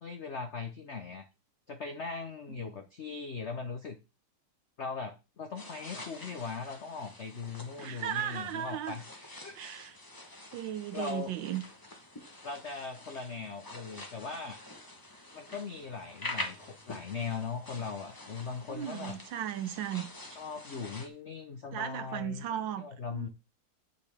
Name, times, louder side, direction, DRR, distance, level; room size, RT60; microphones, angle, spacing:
voice 1, 0.0-1.3 1.7-4.0 4.8-9.6 10.9-11.3 12.4-14.6 15.3-19.2 20.4-23.3, left 5 dB, 70° left, 0.6 m, -39 dB
sound 1, 5.6-21.1, left 2 dB, 20° left, 0.6 m, -46 dB
voice 2, 7.8-9.0 9.5-10.0 10.5-11.6 18.7-20.0 21.7-22.8 23.1-23.3, right 10 dB, 70° right, 1.3 m, -36 dB
8.1 x 6.5 x 3.4 m
omnidirectional pair, 2.3 m